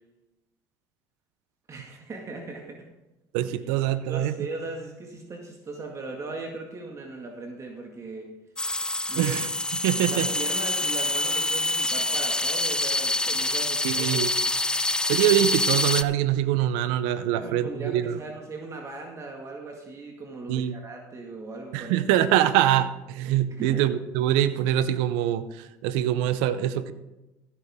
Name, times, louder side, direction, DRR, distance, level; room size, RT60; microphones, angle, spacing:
voice 1, 1.7-2.9 4.1-8.3 9.1-9.4 10.1-14.3 17.3-22.0 23.5-23.9, right 3 dB, 40° right, 2 dB, 1.9 m, -38 dB
voice 2, 3.3-4.3 9.2-9.5 9.8-10.3 13.8-14.3 15.1-18.2 20.5-20.7 21.7-25.5 25.8-26.9, right 12 dB, 85° right, 14 dB, 0.7 m, -24 dB
sound 1, 8.6-16.0, left 2 dB, 10° left, 0.5 m, -26 dB
15.5 x 9.2 x 3.7 m, 1.0 s
supercardioid pair, 75°, 8 cm